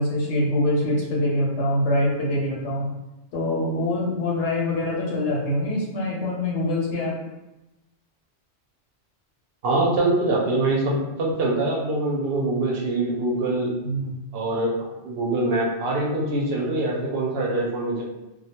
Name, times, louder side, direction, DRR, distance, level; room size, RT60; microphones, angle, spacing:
voice 1, 0.0-2.9 3.3-7.2 13.8-14.1, left 1 dB, 80° left, -3 dB, 0.9 m, -24 dB
voice 2, 9.6-13.7 14.3-14.8 15.0-18.0, right 2 dB, 65° right, -2 dB, 0.7 m, -24 dB
2.2 x 2.1 x 2.8 m, 0.99 s
omnidirectional pair, 1.2 m